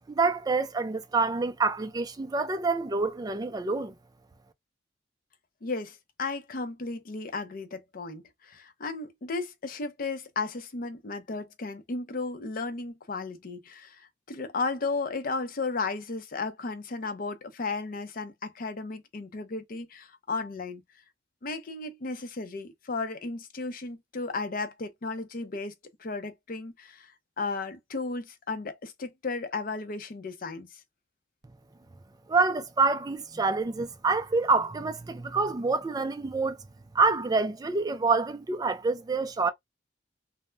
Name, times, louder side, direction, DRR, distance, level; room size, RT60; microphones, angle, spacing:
voice 1, 0.1-4.0 32.3-36.6 36.9-39.5, right 3 dB, 20° right, 0.3 m, -27 dB
voice 2, 5.6-20.8 21.4-25.7 26.0-27.1 27.4-30.8, left 3 dB, 50° left, 0.5 m, -34 dB
2.2 x 2.1 x 3.1 m
head